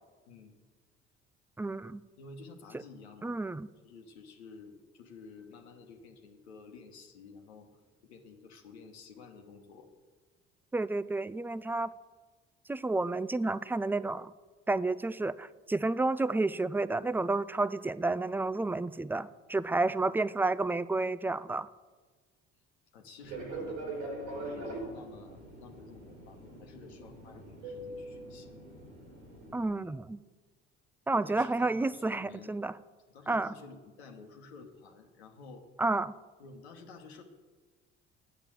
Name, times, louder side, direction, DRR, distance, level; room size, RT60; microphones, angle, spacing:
voice 1, 1.6-2.0 3.2-3.7 10.7-11.9 12.7-14.3 14.7-21.7 29.5-30.2 31.1-32.7 33.3-33.5 35.8-36.1, right 2 dB, 5° right, 17 dB, 0.3 m, -30 dB
voice 2, 2.2-3.4 3.8-7.7 8.0-9.9 19.8-20.2 22.9-28.5 29.7-30.0 31.1-32.5 33.1-35.7 36.4-37.2, left 4 dB, 90° left, 4 dB, 1.2 m, -51 dB
Fixed-wing aircraft airplane, 23.2-29.6, right 2 dB, 90° right, 3.1 m, -42 dB
9.0 x 8.0 x 7.6 m, 1.4 s
hypercardioid pair, 55°, 32 cm